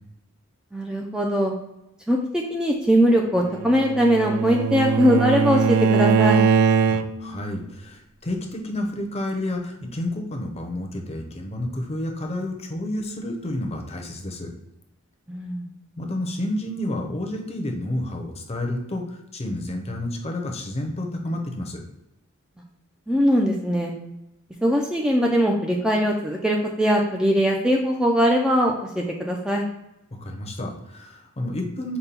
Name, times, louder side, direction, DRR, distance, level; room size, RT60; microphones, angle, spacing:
voice 1, 0.7-1.5 2.1-6.4 15.3-15.7 23.1-23.9 24.6-29.7, equal, 5° right, 0 dB, 0.4 m, -21 dB
Bowed string instrument, 3.4-7.4, right 6 dB, 85° right, 0.3 m, -21 dB
voice 2, 6.9-14.5 16.0-21.8 30.1-32.0, left 1 dB, 30° left, 3 dB, 0.7 m, -30 dB
5.2 x 2.2 x 4.2 m, 0.88 s
head